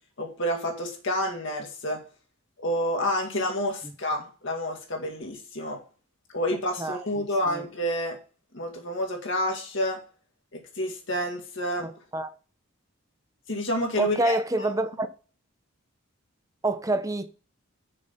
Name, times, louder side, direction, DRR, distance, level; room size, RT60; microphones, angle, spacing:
voice 1, 0.2-2.0 2.6-5.8 6.3-8.2 8.5-10.0 10.5-11.9 13.5-14.7, left 1 dB, 60° left, 2.2 m, -29 dB
voice 2, 6.8-7.7 11.8-12.3 14.0-15.1 16.6-17.3, right 2 dB, 15° right, 0.6 m, -28 dB
6.7 x 5.4 x 5.7 m
head